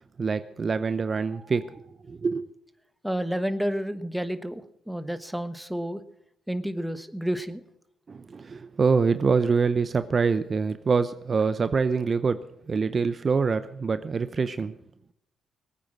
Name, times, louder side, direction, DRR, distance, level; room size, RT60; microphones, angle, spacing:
voice 1, 0.2-2.5 8.1-14.8, right 5 dB, 40° right, 12 dB, 0.7 m, -25 dB
voice 2, 3.0-6.0 6.5-7.6, equal, 5° right, 11 dB, 1.2 m, -30 dB
20.0 x 9.3 x 6.3 m, 0.76 s
cardioid pair, 90°, 0 cm